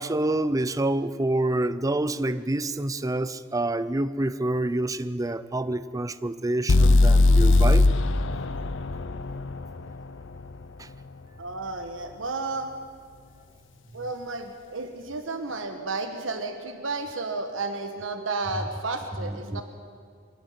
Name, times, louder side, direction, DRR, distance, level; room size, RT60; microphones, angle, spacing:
voice 1, 0.0-7.8 10.8-10.9 19.2-19.6, right 1 dB, 20° right, 14 dB, 0.5 m, -27 dB
sound 1, 6.7-10.6, left 2 dB, 70° left, 0.7 m, -20 dB
voice 2, 11.4-12.7 13.9-19.6, right 3 dB, 90° right, 6 dB, 1.4 m, -32 dB
23.5 x 12.5 x 9.3 m, 2.1 s
head